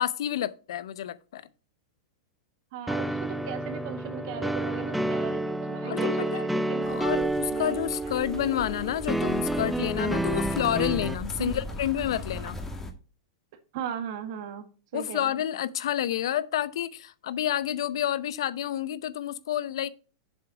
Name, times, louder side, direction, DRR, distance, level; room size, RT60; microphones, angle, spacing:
voice 1, 0.0-1.4 5.8-6.5 6.9-12.6 14.9-19.9, left 11 dB, 75° left, 0.7 m, -29 dB
voice 2, 2.7-8.5 11.4-11.6 13.7-14.7 14.9-15.3, right 9 dB, 60° right, 1.5 m, -37 dB
sound 1, 2.9-11.1, right 1 dB, 5° right, 0.5 m, -29 dB
sound 2, 6.8-12.9, left 1 dB, 15° left, 1.7 m, -38 dB
7.3 x 5.9 x 5.1 m
hypercardioid pair, 110°, 3 cm